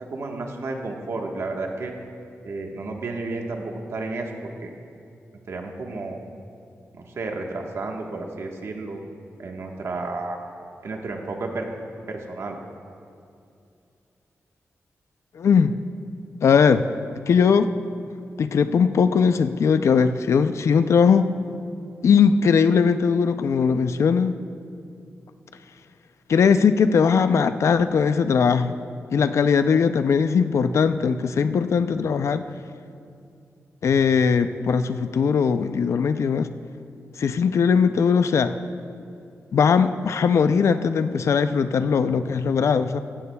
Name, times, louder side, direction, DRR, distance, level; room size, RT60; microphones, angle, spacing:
voice 1, 0.1-1.9 2.4-4.7 5.5-6.2 6.9-9.0 9.4-10.4 10.8-11.7 12.1-12.6, right 3 dB, 65° right, 1 dB, 1.3 m, -32 dB
voice 2, 15.4-15.7 16.4-16.8 17.3-17.7 18.4-21.3 22.0-24.3 26.3-28.7 29.1-32.4 33.8-36.5 37.2-38.5 39.5-43.0, left 6 dB, 70° left, 10 dB, 0.4 m, -19 dB
16.5 x 15.0 x 2.3 m, 2.5 s
wide cardioid pair, 175°, 5 cm